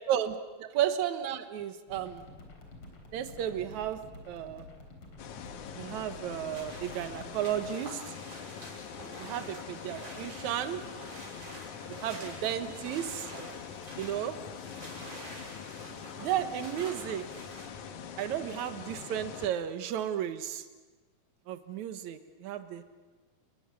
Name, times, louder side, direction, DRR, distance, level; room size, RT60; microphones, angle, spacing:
voice 1, 0.1-2.2 3.1-4.7 5.8-8.1 9.2-10.8 11.9-13.3 14.0-14.4 16.2-17.2 18.2-20.7 21.5-22.8, right 10 dB, 65° right, 9 dB, 2.1 m, -33 dB
sound 1, 1.9-7.8, left 2 dB, 35° left, 4.4 m, -50 dB
sound 2, 5.2-19.5, left 7 dB, 60° left, 2.4 m, -44 dB
sound 3, 6.3-17.7, right 1 dB, 30° right, 7.1 m, -48 dB
29.5 x 21.0 x 7.1 m, 1.2 s
omnidirectional pair, 4.6 m